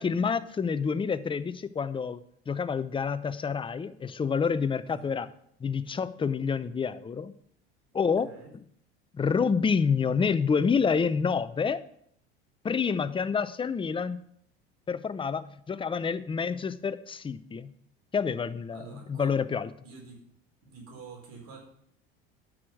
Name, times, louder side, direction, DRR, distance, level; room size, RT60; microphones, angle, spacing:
voice 1, 0.0-2.2 2.5-5.3 5.6-7.3 7.9-8.3 9.1-11.8 12.6-14.2 14.9-17.7 18.1-19.7, left 6 dB, 15° left, 13 dB, 0.6 m, -28 dB
voice 2, 4.9-5.3 8.0-8.5 18.7-19.3 19.8-20.2 20.6-21.6, right 5 dB, 55° right, 0 dB, 4.3 m, -47 dB
9.7 x 6.5 x 6.0 m, 0.67 s
hypercardioid pair, 85°, 31 cm